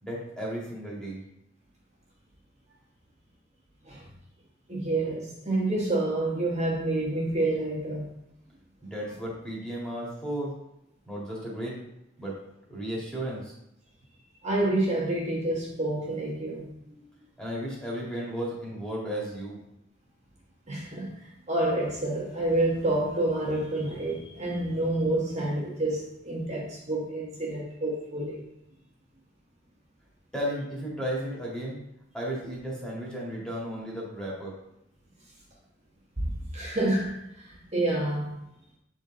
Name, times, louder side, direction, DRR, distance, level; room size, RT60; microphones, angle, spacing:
voice 1, 0.0-1.2 8.8-10.5 11.1-11.8 12.2-12.3 12.7-13.5 17.4-19.6 30.3-31.8 32.1-34.5, equal, 5° left, 1.8 m, -34 dB
voice 2, 4.7-8.1 14.4-17.0 20.7-28.4 36.2-38.3, right 1 dB, 35° right, 1.2 m, -28 dB
8.0 x 4.0 x 3.7 m
head